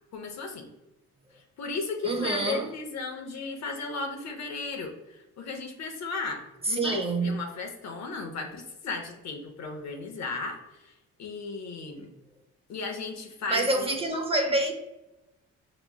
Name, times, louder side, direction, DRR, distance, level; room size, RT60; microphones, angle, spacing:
voice 1, 0.1-0.7 1.3-10.9 11.2-12.1 12.7-13.9, left 3 dB, 60° left, 0.9 m, -35 dB
voice 2, 2.0-2.7 6.6-7.4 13.5-14.7, right 2 dB, 20° right, 0.7 m, -27 dB
5.7 x 3.0 x 2.3 m
cardioid pair, 90°, 30 cm